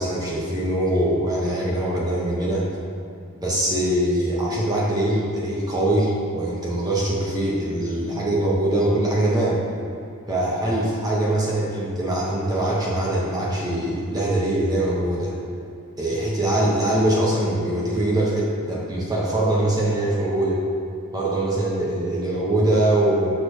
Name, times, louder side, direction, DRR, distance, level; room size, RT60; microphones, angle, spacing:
voice 1, 0.0-2.6 3.4-9.6 10.3-15.3 16.0-20.6 21.1-23.4, right 1 dB, 15° right, -5 dB, 0.7 m, -22 dB
6.3 x 3.2 x 5.2 m, 2.6 s
head